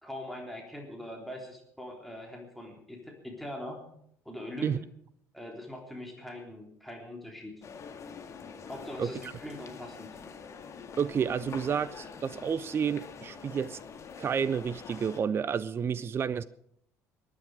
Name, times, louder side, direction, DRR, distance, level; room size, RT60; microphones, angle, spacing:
voice 1, 0.0-3.8 4.3-4.8 5.3-7.5 8.7-10.1, left 1 dB, ahead, 3.5 m, -42 dB
sound 1, 7.6-15.2, left 5 dB, 35° left, 1.8 m, -45 dB
voice 2, 9.0-9.3 11.0-13.8 14.2-16.4, right 7 dB, 30° right, 0.5 m, -30 dB
22.0 x 10.0 x 4.9 m
figure-of-eight pair, 55°, 8 cm